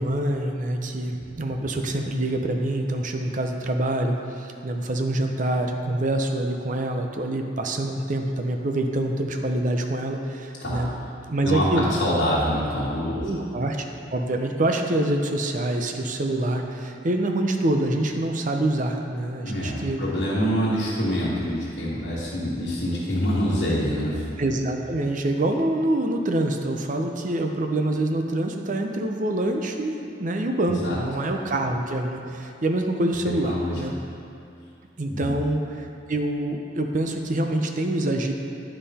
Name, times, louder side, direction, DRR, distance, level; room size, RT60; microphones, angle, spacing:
voice 1, 0.0-10.9 11.3-11.9 13.2-13.8 14.1-20.0 24.4-33.9 35.0-38.3, right 1 dB, 45° right, 4 dB, 0.6 m, -26 dB
voice 2, 11.4-13.3 19.4-24.3 30.8-31.0 33.4-33.8 35.1-35.3, equal, 85° left, -11 dB, 1.6 m, -25 dB
9.5 x 5.5 x 4.2 m, 2.5 s
head